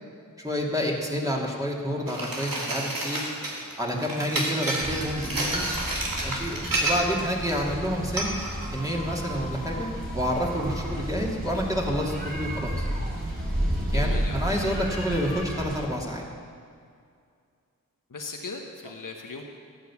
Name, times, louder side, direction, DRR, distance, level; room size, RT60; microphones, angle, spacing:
voice 1, 0.4-3.2 3.8-5.6 6.2-8.3 8.7-9.9 10.1-12.9 13.9-16.2, equal, 10° right, -3 dB, 2.7 m, -29 dB
sound 1, 2.1-7.2 7.5-7.7 8.2-8.7, right 1 dB, 75° right, 2.8 m, -30 dB
sound 2, 4.8-15.9, equal, 25° right, 4.3 m, -32 dB
voice 2, 13.9-14.6 18.1-19.4, left 3 dB, 65° left, 2 dB, 1.3 m, -38 dB
14.5 x 9.4 x 7.2 m, 2.2 s
wide cardioid pair, 45°, 34 cm